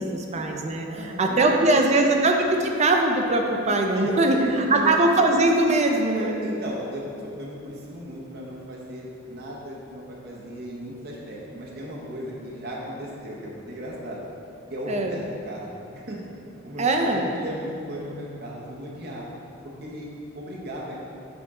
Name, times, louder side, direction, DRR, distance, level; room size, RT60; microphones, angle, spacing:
voice 1, 0.0-2.4 2.6-6.4 14.9-15.2 16.8-17.3, right 2 dB, 35° right, 2 dB, 0.5 m, -21 dB
voice 2, 0.9-1.9 3.9-5.0 6.2-14.2 14.7-16.2 16.6-19.3 19.8-20.1 20.3-21.0, equal, 55° right, -4 dB, 0.9 m, -35 dB
7.1 x 4.2 x 3.7 m, 2.6 s
head